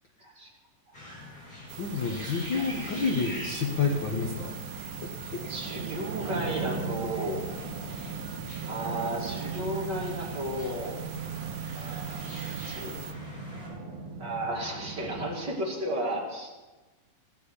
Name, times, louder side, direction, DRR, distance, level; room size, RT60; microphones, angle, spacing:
voice 1, 0.2-0.5 0.9-1.0 5.5-7.4 8.7-11.0 11.7-12.9 14.2-16.5, right 1 dB, 30° right, -4 dB, 3.2 m, -33 dB
sound 1, 0.9-13.7, left 1 dB, 25° left, 5.7 m, -45 dB
sound 2, 1.7-13.1, right 8 dB, 90° right, 1.4 m, -43 dB
voice 2, 1.8-4.5 5.4-5.5, left 4 dB, 70° left, 0 dB, 1.1 m, -29 dB
sound 3, 2.7-15.3, right 5 dB, 65° right, 3.1 m, -38 dB
15.5 x 6.8 x 8.3 m, 1.2 s
omnidirectional pair, 3.9 m